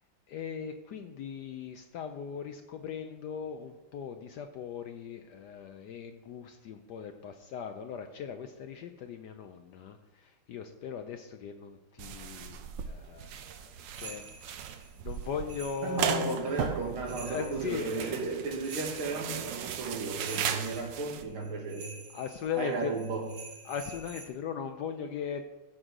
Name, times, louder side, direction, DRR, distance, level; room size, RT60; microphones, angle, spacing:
voice 1, 0.3-14.2 14.5-16.4 17.2-18.2 20.6-20.7 22.1-22.9 23.6-25.4, left 7 dB, 75° left, 7 dB, 1.0 m, -39 dB
sound 1, 12.0-21.2, right 9 dB, 70° right, 1.2 m, -37 dB
sound 2, 13.9-24.3, right 4 dB, 50° right, 1.7 m, -49 dB
voice 2, 15.8-22.0 22.6-23.3, right 3 dB, 90° right, 0 dB, 2.6 m, -34 dB
14.5 x 6.2 x 3.7 m, 1.1 s
omnidirectional pair, 2.3 m